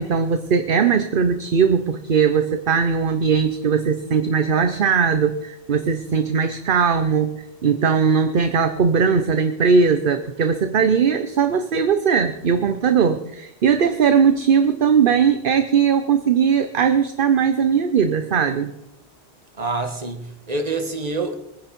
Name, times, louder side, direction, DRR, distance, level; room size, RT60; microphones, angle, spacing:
voice 1, 0.0-18.7, right 6 dB, 55° right, 9 dB, 1.0 m, -19 dB
voice 2, 19.5-21.4, right 3 dB, 40° right, 6 dB, 1.7 m, -26 dB
22.5 x 10.0 x 5.4 m, 0.86 s
omnidirectional pair, 1.1 m